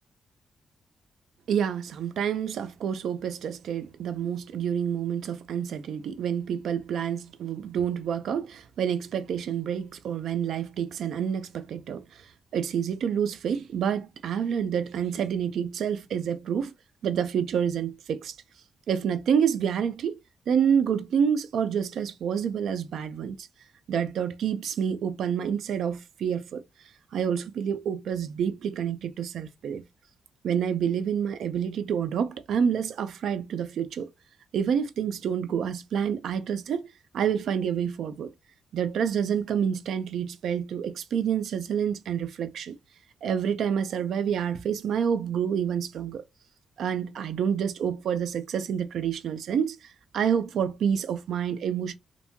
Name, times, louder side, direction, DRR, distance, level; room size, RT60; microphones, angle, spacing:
voice 1, 1.5-12.2 12.5-16.7 17.0-18.4 18.9-20.2 20.5-23.5 23.9-26.6 27.1-29.8 30.4-34.1 34.5-36.9 37.1-38.3 38.7-42.8 43.2-46.2 46.8-49.9 50.1-51.9, right 8 dB, 80° right, 0.3 m, -28 dB
2.6 x 2.1 x 2.7 m
cardioid pair, 85°, 0 cm